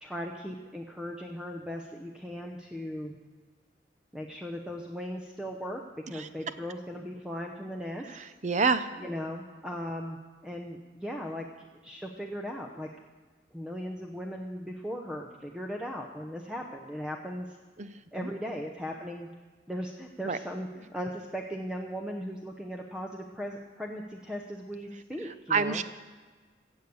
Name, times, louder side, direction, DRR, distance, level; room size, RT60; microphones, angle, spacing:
voice 1, 0.0-3.2 4.1-8.1 9.0-12.9 13.5-17.6 18.1-19.3 19.7-25.8, equal, 5° right, 1 dB, 0.7 m, -38 dB
voice 2, 8.1-8.9 17.8-17.9 20.2-20.4 25.5-25.8, right 5 dB, 40° right, 12 dB, 0.6 m, -27 dB
15.5 x 8.0 x 6.9 m, 1.4 s
head